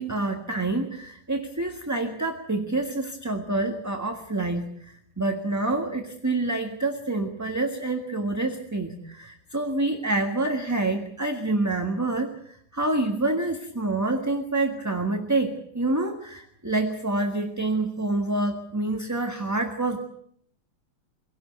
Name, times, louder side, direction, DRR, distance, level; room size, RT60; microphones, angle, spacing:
voice 1, 0.0-4.7 5.2-12.3 12.7-20.0, right 2 dB, 10° right, 4 dB, 1.4 m, -27 dB
24.5 x 17.5 x 8.0 m, 0.68 s
omnidirectional pair, 2.3 m